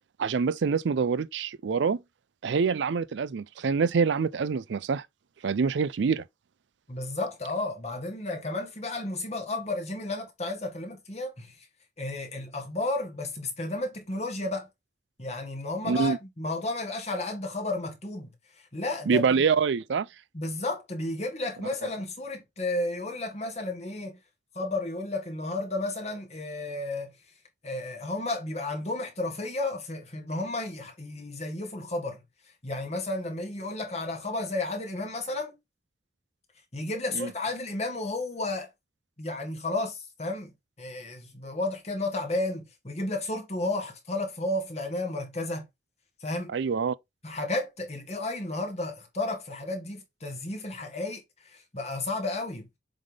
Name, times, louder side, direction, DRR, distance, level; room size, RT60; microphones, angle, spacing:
voice 1, 0.2-2.0 2.4-5.0 5.4-6.2 15.9-16.2 19.1-20.1 37.1-37.3 46.5-47.0, right 5 dB, 80° right, 0.4 m, -25 dB
voice 2, 6.9-11.7 12.0-14.7 15.2-19.4 20.3-24.2 24.5-27.1 27.6-35.5 36.7-38.7 39.2-45.7 46.2-46.5 47.2-52.7, left 2 dB, 35° left, 1.9 m, -32 dB
7.4 x 3.5 x 3.7 m
head